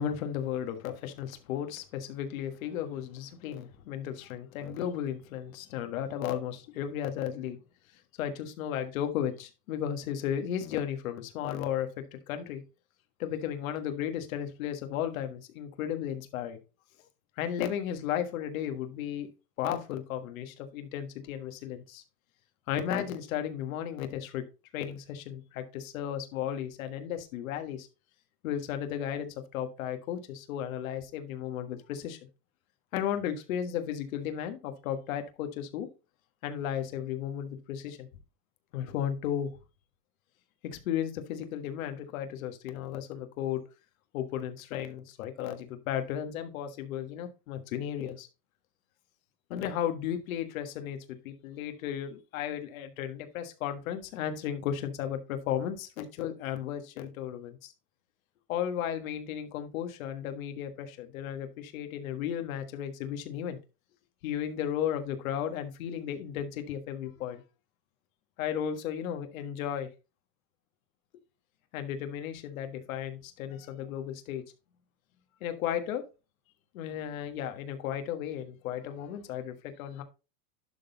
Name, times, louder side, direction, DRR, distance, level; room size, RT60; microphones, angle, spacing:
voice 1, 0.0-7.6 8.2-12.6 13.2-16.6 17.4-19.3 19.6-22.0 22.7-24.4 24.7-27.9 28.4-32.2 32.9-35.9 36.4-38.1 38.7-39.5 40.6-43.6 44.1-48.3 49.5-57.7 58.5-63.6 64.2-67.4 68.4-69.9 71.7-74.4 75.4-76.0 76.7-80.0, left 9 dB, 55° left, 7 dB, 1.5 m, -34 dB
11.5 x 3.9 x 3.9 m, 0.29 s
supercardioid pair, 170°, 49 cm